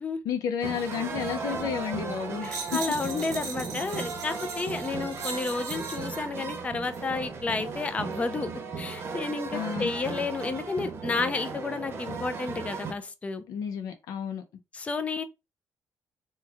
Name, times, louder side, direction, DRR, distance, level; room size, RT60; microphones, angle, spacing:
voice 1, 0.2-2.8 9.5-9.9 13.5-14.4, left 8 dB, 80° left, 0.6 m, -31 dB
sound 1, 0.6-12.9, right 4 dB, 45° right, 0.8 m, -36 dB
voice 2, 2.4-8.5 8.8-13.4 14.7-15.2, left 4 dB, 20° left, 0.4 m, -31 dB
sound 2, 2.4-6.2 6.8-7.0, right 4 dB, 80° right, 1.0 m, -39 dB
3.1 x 2.2 x 3.4 m
cardioid pair, 130°, 6 cm